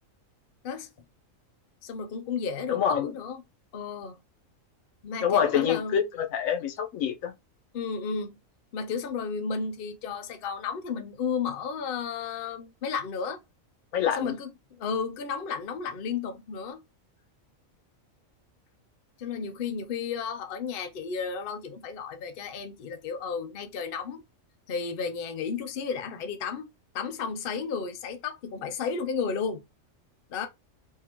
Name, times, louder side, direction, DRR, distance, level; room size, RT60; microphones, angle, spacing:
voice 1, 1.8-3.4 3.7-4.2 5.0-6.0 7.7-8.3 8.7-13.4 14.1-16.8 19.2-24.2 24.7-26.7 26.9-29.6 30.3-30.5, left 5 dB, 55° left, 0.7 m, -33 dB
voice 2, 2.7-3.2 5.2-7.3 13.9-14.3, left 8 dB, 85° left, 1.1 m, -26 dB
3.7 x 2.8 x 2.9 m
omnidirectional pair, 1.4 m